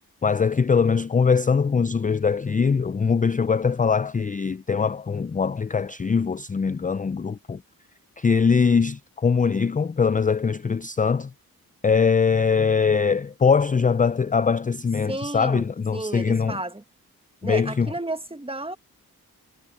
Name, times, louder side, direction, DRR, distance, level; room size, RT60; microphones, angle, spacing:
voice 1, 0.2-7.6 8.2-11.3 11.8-16.6 17.4-17.9, left 5 dB, 25° left, 0.4 m, -22 dB
voice 2, 15.1-15.6 15.9-16.8 17.4-18.8, right 2 dB, 15° right, 1.4 m, -32 dB
cardioid pair, 50°, 37 cm